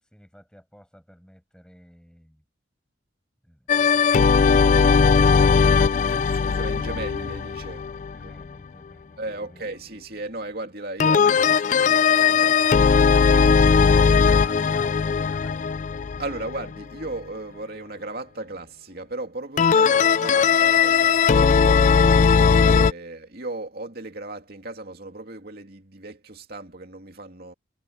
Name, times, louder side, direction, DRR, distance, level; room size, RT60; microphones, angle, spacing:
voice 1, 0.0-2.4 3.4-4.4 7.9-9.9 12.3-15.9, equal, 5° left, 7.8 m, -52 dB
sound 1, 3.7-8.4 11.0-16.8 19.6-22.9, left 5 dB, 40° left, 0.3 m, -18 dB
voice 2, 6.1-7.9 8.2-8.3 9.2-12.7 16.2-22.3 22.7-27.5, right 2 dB, 50° right, 2.8 m, -36 dB
head